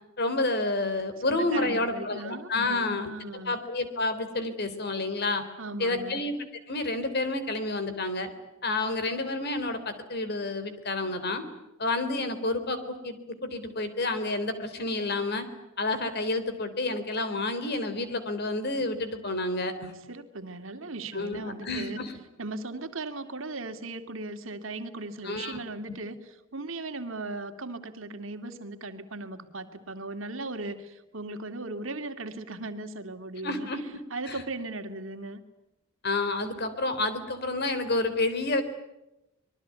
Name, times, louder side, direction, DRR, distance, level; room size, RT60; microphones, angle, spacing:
voice 1, 0.2-3.1 3.4-5.4 5.8-6.4 6.7-8.3 8.6-11.4 11.8-15.5 15.8-19.9 21.1-22.1 25.2-25.6 33.4-33.8 34.3-34.4 36.0-38.6, left 2 dB, 50° left, 10 dB, 3.7 m, -29 dB
voice 2, 1.3-3.6 5.6-6.2 20.1-22.0 22.4-33.7 34.1-35.4, right 2 dB, 70° right, 8 dB, 2.4 m, -38 dB
26.0 x 22.0 x 9.5 m, 0.94 s
head